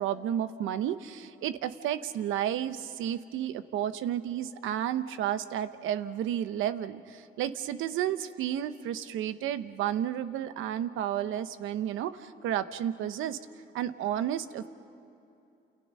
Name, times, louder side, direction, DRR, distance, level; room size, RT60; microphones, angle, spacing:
voice 1, 0.0-13.4 13.7-14.7, right 10 dB, 90° right, 11 dB, 1.0 m, -32 dB
29.5 x 28.5 x 5.6 m, 2.8 s
cardioid pair, 90°, 20 cm